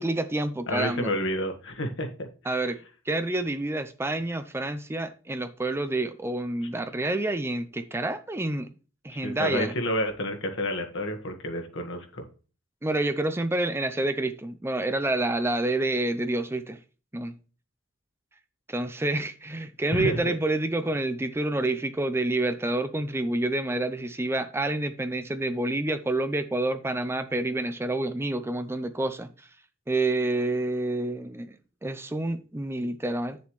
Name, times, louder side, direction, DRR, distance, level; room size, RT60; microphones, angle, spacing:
voice 1, 0.0-1.1 2.5-2.8 3.1-8.7 9.0-9.7 12.8-16.8 17.1-17.3 18.7-29.3 29.9-31.6 31.8-33.4, right 2 dB, 10° right, 0.5 m, -28 dB
voice 2, 0.7-2.3 9.1-12.3 19.9-20.3, left 1 dB, 65° left, 1.5 m, -30 dB
9.3 x 6.9 x 3.1 m
head